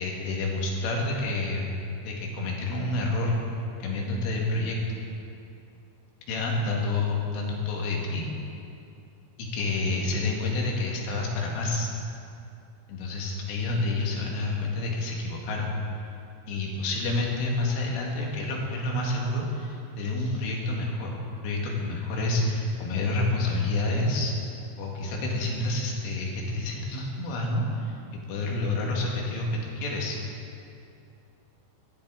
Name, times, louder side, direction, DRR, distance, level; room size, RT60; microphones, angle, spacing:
voice 1, 0.0-1.7 2.0-3.4 3.8-4.8 6.3-8.3 9.4-11.9 12.9-15.8 16.5-24.3 24.8-27.9 28.3-30.2, left 2 dB, 80° left, -2 dB, 4.8 m, -28 dB
19.0 x 14.0 x 4.9 m, 2.6 s
omnidirectional pair, 5.6 m